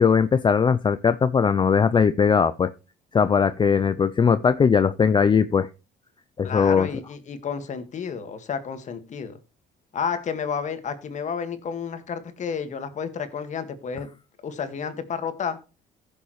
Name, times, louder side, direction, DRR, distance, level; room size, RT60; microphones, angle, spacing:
voice 1, 0.0-2.7 3.1-5.7 6.4-6.9, left 6 dB, 30° left, 0.5 m, -19 dB
voice 2, 6.4-9.4 9.9-14.1 14.4-15.6, left 6 dB, 45° left, 1.8 m, -31 dB
15.5 x 7.0 x 3.1 m
cardioid pair, 110°, 17 cm